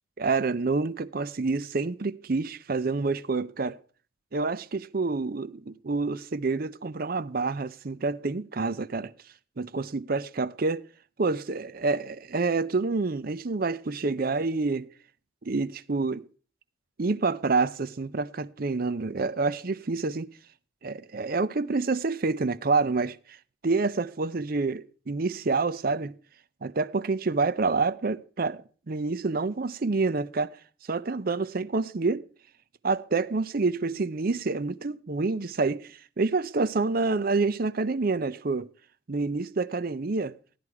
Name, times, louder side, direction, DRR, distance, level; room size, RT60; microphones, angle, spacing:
voice 1, 0.2-3.8 4.3-9.1 9.6-10.8 11.2-14.9 15.4-16.3 17.0-20.3 20.8-23.2 23.6-26.2 26.6-28.6 28.9-30.6 30.9-32.2 32.8-38.7 39.1-40.4, right 3 dB, 45° right, 0.5 m, -28 dB
16.0 x 11.0 x 4.7 m
head